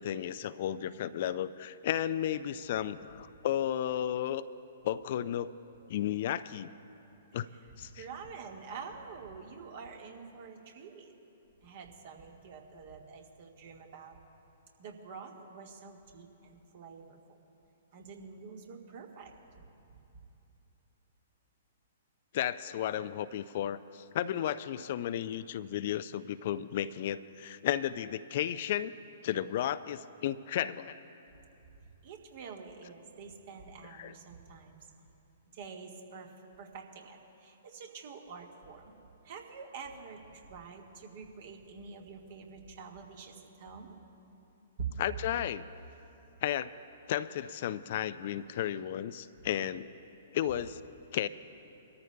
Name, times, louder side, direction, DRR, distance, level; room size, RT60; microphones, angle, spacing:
voice 1, 0.0-4.4 4.8-5.5 5.9-6.7 7.3-7.5 7.8-8.0 22.3-28.9 29.2-31.0 34.0-34.1 45.0-45.7 46.4-46.7 47.1-49.9 50.3-50.8 51.1-51.3, left 11 dB, 50° left, 14 dB, 0.4 m, -33 dB
voice 2, 7.5-11.1 11.6-14.2 14.8-17.4 17.9-19.6 32.0-34.8 35.5-36.3 36.6-38.9 39.2-43.9 44.8-44.9, right 5 dB, 50° right, 2 dB, 1.6 m, -47 dB
24.5 x 13.5 x 2.2 m, 2.9 s
figure-of-eight pair, 115°, 0 cm